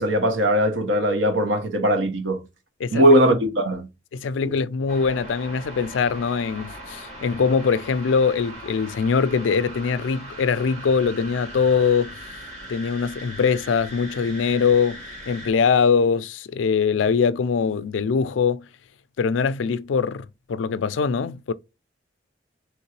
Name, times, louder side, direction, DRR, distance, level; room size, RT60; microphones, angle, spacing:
voice 1, 0.0-2.4 2.9-3.9, right 1 dB, 80° right, 1.2 m, -19 dB
voice 2, 4.1-12.1 12.7-18.6 19.2-21.5, left 5 dB, 85° left, 0.4 m, -22 dB
sound 1, 4.9-15.5, right 1 dB, 40° right, 2.2 m, -39 dB
3.6 x 3.1 x 3.1 m
head